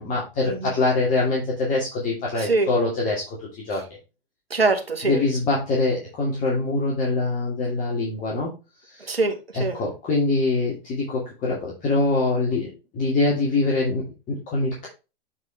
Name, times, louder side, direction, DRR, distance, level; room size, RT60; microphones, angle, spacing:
voice 1, 0.0-3.8 5.0-8.5 8.8-9.1 9.5-14.9, left 3 dB, 25° left, 2.6 m, -24 dB
voice 2, 2.3-2.7 4.5-5.2 9.1-9.8, right 3 dB, 85° right, 1.6 m, -23 dB
8.1 x 4.9 x 3.4 m
figure-of-eight pair, 105°, 29 cm